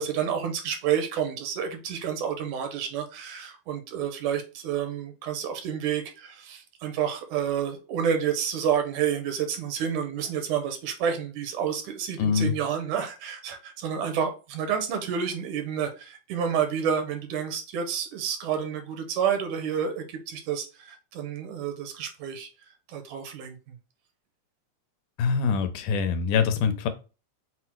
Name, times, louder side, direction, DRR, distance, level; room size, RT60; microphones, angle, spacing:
voice 1, 0.0-22.5 22.9-23.8, right 8 dB, 80° right, 2.2 m, -29 dB
voice 2, 12.2-12.5 25.2-26.9, left 6 dB, 90° left, 2.2 m, -24 dB
5.9 x 2.0 x 4.4 m
omnidirectional pair, 3.7 m